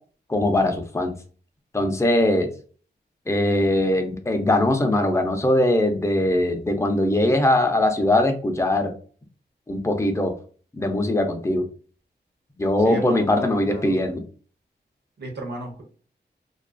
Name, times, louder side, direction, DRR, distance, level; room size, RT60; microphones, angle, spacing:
voice 1, 0.3-1.1 1.7-2.5 3.3-8.9 9.7-10.3 10.8-11.7 12.6-14.2, left 1 dB, 15° left, 5 dB, 0.5 m, -21 dB
voice 2, 12.8-14.0 15.2-15.8, right 1 dB, 70° right, 1 dB, 0.7 m, -34 dB
2.4 x 2.3 x 2.2 m, 0.41 s
wide cardioid pair, 95°, 19 cm